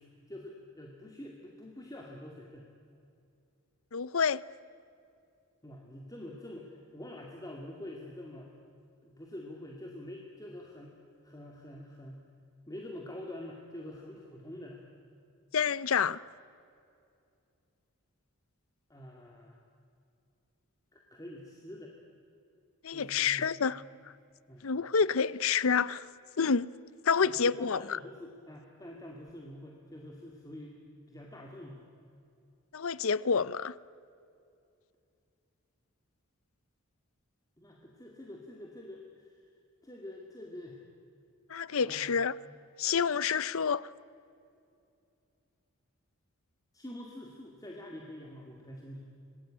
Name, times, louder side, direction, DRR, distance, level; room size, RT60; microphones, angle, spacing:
voice 1, 0.0-2.7 5.6-8.5 9.0-10.9 11.2-12.2 12.7-14.8 18.9-19.6 20.9-21.9 22.9-23.5 24.5-24.6 27.1-30.7 31.1-31.9 37.6-39.4 39.8-40.8 41.8-42.2 46.7-49.1, left 1 dB, 15° left, 2.3 m, -46 dB
voice 2, 3.9-4.4 15.5-16.2 22.8-23.8 24.6-26.1 26.4-26.7 27.0-28.0 32.7-33.7 41.5-42.3 42.8-43.9, left 6 dB, 70° left, 0.6 m, -28 dB
27.0 x 19.5 x 9.0 m
head